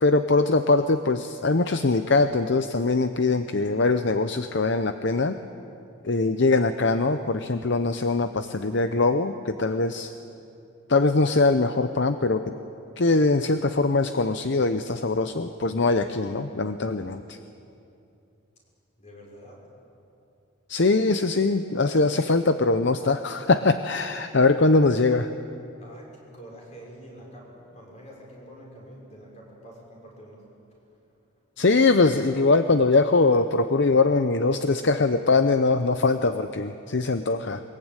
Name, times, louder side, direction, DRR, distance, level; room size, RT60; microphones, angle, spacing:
voice 1, 0.0-5.4 6.0-10.1 10.9-12.5 13.0-17.4 20.7-25.3 31.6-37.6, left 3 dB, 55° left, 9 dB, 0.7 m, -22 dB
voice 2, 19.0-19.7 25.8-30.5, equal, 30° left, -2 dB, 6.1 m, -46 dB
22.5 x 21.5 x 9.0 m, 2.7 s
head